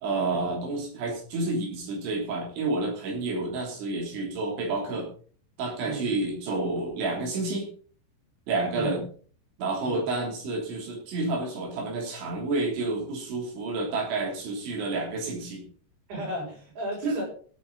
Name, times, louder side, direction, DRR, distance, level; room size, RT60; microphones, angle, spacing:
voice 1, 0.0-5.1 5.6-7.7 8.5-9.0 9.6-15.6 17.0-17.2, right 3 dB, 80° right, 1 dB, 5.7 m, -29 dB
voice 2, 5.8-6.1 8.7-9.0 9.8-10.1 16.1-17.2, equal, 60° right, -4 dB, 8.8 m, -35 dB
17.5 x 9.2 x 4.1 m, 0.44 s
omnidirectional pair, 5.2 m